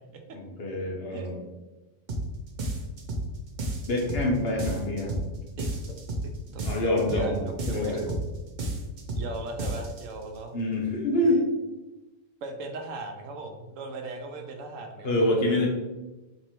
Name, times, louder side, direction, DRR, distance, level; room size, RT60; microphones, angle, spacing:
voice 1, 0.3-1.4 3.9-5.1 6.6-8.0 10.5-11.4 15.0-15.7, left 1 dB, 55° left, -2 dB, 1.1 m, -26 dB
voice 2, 1.1-1.5 5.6-6.0 6.2-6.6 7.1-8.2 9.1-10.5 11.2-11.4 12.4-15.1, right 3 dB, 80° right, 4 dB, 1.0 m, -38 dB
sound 1, 2.1-2.3 2.6-3.3 3.6-4.3 4.6-5.3 5.6-6.3 6.6-7.3 7.6-8.3 8.6-9.3 9.6-10.0, right 2 dB, 50° right, 0.6 m, -31 dB
3.4 x 3.1 x 4.3 m, 1.1 s
omnidirectional pair, 1.3 m